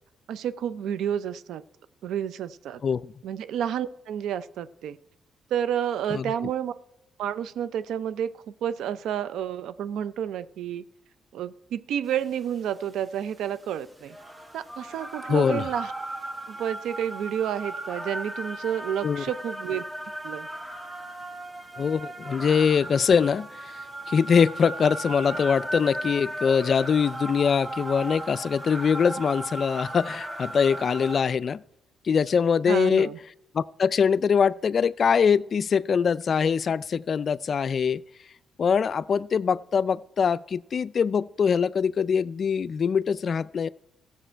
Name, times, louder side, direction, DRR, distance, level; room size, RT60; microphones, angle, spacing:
voice 1, 0.3-1.6 2.0-2.8 3.2-5.0 5.5-6.7 7.2-8.3 8.6-10.8 11.3-14.2 14.5-15.9 16.5-19.8 20.2-20.5 32.7-33.2, right 9 dB, 80° right, 0.5 m, -30 dB
voice 2, 2.8-3.1 6.1-6.2 15.3-15.7 19.0-19.2 21.8-23.8 24.1-31.6 32.0-33.1 33.5-38.0 38.6-43.7, left 6 dB, 50° left, 0.3 m, -23 dB
sound 1, 12.2-31.2, right 1 dB, 15° right, 1.4 m, -36 dB
15.0 x 7.2 x 4.5 m
cardioid pair, 90°, 0 cm